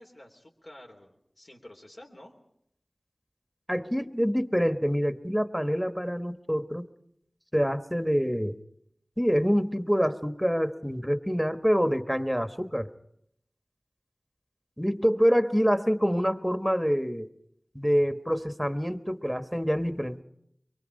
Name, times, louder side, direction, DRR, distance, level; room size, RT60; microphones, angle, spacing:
voice 1, 0.0-2.3, left 1 dB, 75° left, 1 dB, 3.5 m, -50 dB
voice 2, 3.7-6.9 7.5-8.6 9.2-12.9 14.8-17.3 17.7-20.2, equal, ahead, 9 dB, 1.1 m, -26 dB
24.0 x 23.5 x 5.2 m, 0.73 s
wide cardioid pair, 45°, 0 cm